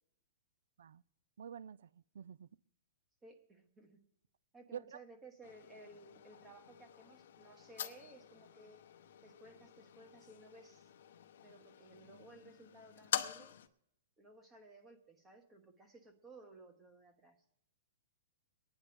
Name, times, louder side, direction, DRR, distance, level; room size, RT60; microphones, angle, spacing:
voice 1, 1.4-2.5 4.7-5.0, right 8 dB, 80° right, 0.4 m, -48 dB
voice 2, 3.2-4.0 4.5-8.8 9.2-10.9 11.4-13.5 14.2-17.4, right 2 dB, 15° right, 1.2 m, -58 dB
sound 1, 5.4-13.7, left 9 dB, 70° left, 0.9 m, -46 dB
23.5 x 9.6 x 3.4 m
hypercardioid pair, 155°, 0 cm